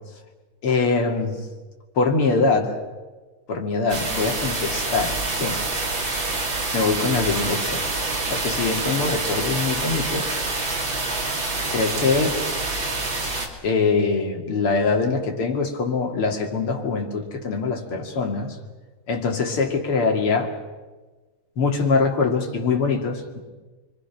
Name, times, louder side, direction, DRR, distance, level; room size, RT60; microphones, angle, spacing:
voice 1, 0.6-1.4 2.0-2.7 3.5-5.6 6.7-7.8 8.3-10.3 11.7-12.4 13.6-18.6 19.1-20.5 21.6-23.4, left 4 dB, 85° left, 3 dB, 3.4 m, -23 dB
sound 1, 3.9-13.5, right 3 dB, 60° right, 3.7 m, -26 dB
29.5 x 23.5 x 6.0 m, 1.3 s
omnidirectional pair, 2.4 m